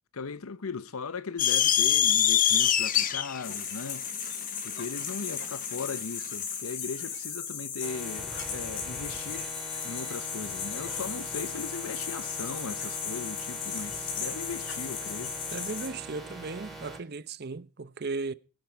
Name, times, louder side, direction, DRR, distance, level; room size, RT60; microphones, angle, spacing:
voice 1, 0.1-4.1 4.6-9.5 9.8-15.3, left 4 dB, 85° left, 0.8 m, -38 dB
sound 1, 1.4-5.9, left 10 dB, 40° left, 0.8 m, -24 dB
sound 2, 3.4-15.9, left 7 dB, 55° left, 3.3 m, -36 dB
sound 3, 7.8-17.0, right 2 dB, ahead, 3.9 m, -43 dB
voice 2, 15.5-18.3, right 3 dB, 50° right, 0.7 m, -36 dB
20.0 x 10.5 x 4.6 m
head